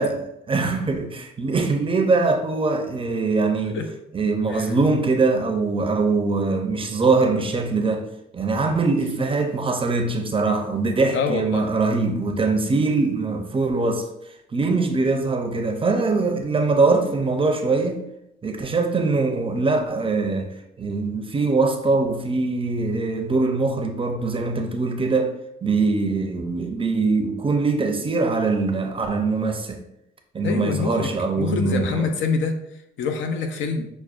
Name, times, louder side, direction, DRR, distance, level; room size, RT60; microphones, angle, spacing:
voice 1, 0.0-3.8 4.1-8.0 8.3-14.1 14.5-18.0 18.4-20.5 20.8-25.3 25.6-29.8 30.3-32.1, right 3 dB, 25° right, 0.5 m, -22 dB
voice 2, 11.1-11.7 30.4-32.6 33.0-33.9, left 5 dB, 75° left, 0.6 m, -26 dB
5.9 x 2.1 x 2.4 m
cardioid pair, 90°, 20 cm